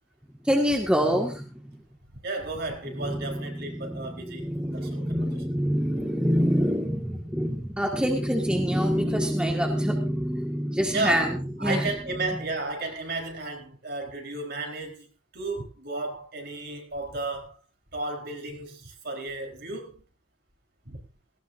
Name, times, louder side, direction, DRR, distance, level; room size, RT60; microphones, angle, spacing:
voice 1, 0.4-1.7 3.0-11.9, equal, 5° right, 1 dB, 1.8 m, -26 dB
voice 2, 2.2-5.4 10.9-17.6 17.9-20.0 20.8-21.0, right 2 dB, 50° right, 3 dB, 4.0 m, -33 dB
18.5 x 16.5 x 2.6 m, 0.32 s
head